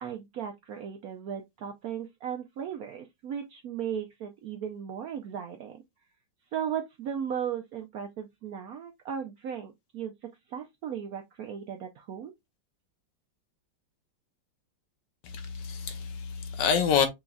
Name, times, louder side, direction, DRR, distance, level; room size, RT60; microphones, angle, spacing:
voice 1, 0.0-5.8 6.5-10.1 10.5-12.3, right 8 dB, 75° right, 0.8 m, -36 dB
voice 2, 15.2-17.1, left 7 dB, 70° left, 1.4 m, -27 dB
6.0 x 3.1 x 2.3 m
omnidirectional pair, 2.1 m